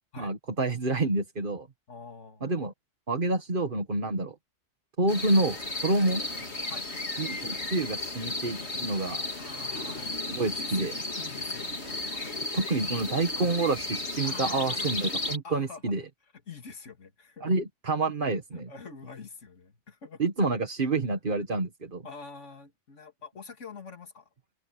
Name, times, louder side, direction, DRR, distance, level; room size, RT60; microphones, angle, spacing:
voice 1, 0.2-1.7 2.4-2.7 3.1-4.4 5.0-6.2 7.2-9.2 10.3-10.9 12.5-16.0 17.4-18.7 20.2-22.1, right 2 dB, 45° right, 1.9 m, -28 dB
voice 2, 1.9-2.5 6.7-6.9 9.4-12.6 14.2-14.9 15.4-15.9 16.2-17.5 18.5-20.2 22.0-24.3, left 5 dB, 80° left, 2.6 m, -46 dB
sound 1, 5.1-15.4, left 2 dB, 65° left, 3.8 m, -34 dB
omnidirectional pair, 1.2 m